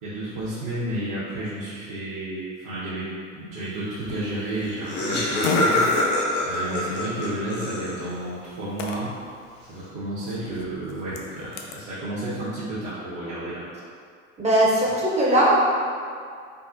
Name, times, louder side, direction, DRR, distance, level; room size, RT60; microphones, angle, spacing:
voice 1, 0.0-5.9 6.4-9.1 9.7-13.7, right 1 dB, 50° right, -9 dB, 0.8 m, -31 dB
Fart, 4.1-11.8, left 3 dB, 70° left, 0.5 m, -36 dB
Laughter, 4.3-4.4 4.6-8.2, left 1 dB, 55° left, 0.9 m, -25 dB
voice 2, 14.4-15.6, right 1 dB, 20° right, -6 dB, 0.7 m, -20 dB
3.6 x 2.0 x 2.7 m, 2.2 s
hypercardioid pair, 70°, 36 cm